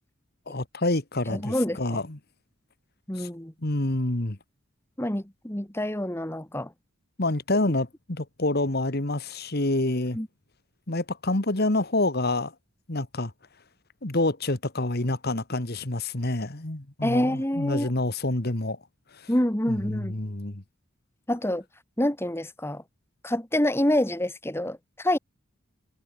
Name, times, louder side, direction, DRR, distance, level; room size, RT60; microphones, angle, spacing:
voice 1, 0.5-2.2 3.2-3.3 3.6-4.4 7.2-10.2 10.9-12.5 12.9-13.3 14.0-18.8 19.1-19.3 19.7-20.6, left 2 dB, 45° left, 1.7 m, -27 dB
voice 2, 1.3-2.0 3.1-3.5 5.0-6.7 10.1-10.3 17.0-17.9 19.3-20.2 21.3-21.6 22.0-22.8 23.2-25.2, left 1 dB, 10° left, 1.4 m, -27 dB
head